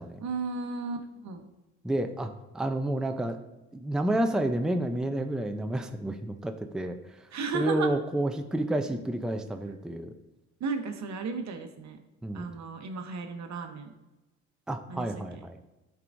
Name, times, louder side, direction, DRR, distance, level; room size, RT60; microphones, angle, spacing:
voice 1, 0.2-1.4 7.3-7.9 10.6-12.0 12.3-13.9 14.9-15.1 15.3-15.4, right 4 dB, 65° right, 6 dB, 1.0 m, -34 dB
voice 2, 1.8-3.4 3.7-7.0 7.5-10.1 12.2-12.5 14.7-15.6, right 1 dB, ahead, 5 dB, 0.5 m, -30 dB
12.0 x 4.7 x 2.6 m, 1.0 s
cardioid pair, 90°, 30 cm